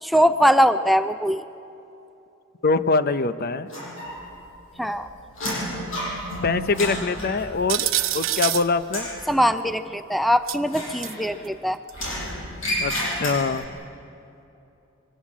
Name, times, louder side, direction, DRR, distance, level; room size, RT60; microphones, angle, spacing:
voice 1, 0.0-1.4 4.8-5.1 9.3-11.8, equal, ahead, 10 dB, 0.4 m, -21 dB
voice 2, 2.6-3.7 6.4-9.1 12.8-13.7, left 4 dB, 50° left, 12 dB, 0.6 m, -24 dB
sound 1, 3.7-4.5 4.7-8.5 8.8-9.2 10.6-11.5 11.9-13.7, equal, 80° left, 7.0 m, -31 dB
sound 2, 7.7-8.7 10.5-11.1 11.9-12.0 13.6-13.7, right 14 dB, 85° right, 0.8 m, -26 dB
23.5 x 18.5 x 7.4 m, 2.8 s
head